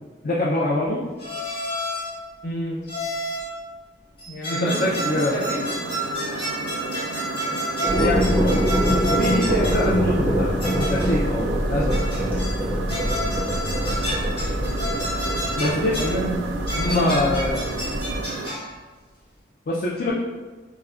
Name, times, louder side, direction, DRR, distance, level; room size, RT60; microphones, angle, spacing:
voice 1, 0.2-1.0 4.5-5.3 8.0-12.0 12.7-12.9 15.6-15.9 16.8-17.6 19.7-20.1, left 2 dB, 50° left, -6 dB, 0.4 m, -25 dB
sound 1, 1.2-2.2 2.9-3.6 4.2-9.9 10.6-11.3 11.9-12.6 12.9-16.2 16.7-18.8, equal, 30° left, 0.9 m, -30 dB
voice 2, 2.4-3.0 4.3-5.6 14.6-15.0 16.0-16.4 16.8-17.2, right 1 dB, 70° left, -5 dB, 0.9 m, -29 dB
sound 2, 4.6-18.5, right 3 dB, 80° right, 0.3 m, -33 dB
sound 3, 7.8-18.2, equal, 20° right, 0.5 m, -24 dB
4.6 x 2.1 x 2.3 m, 1.3 s
head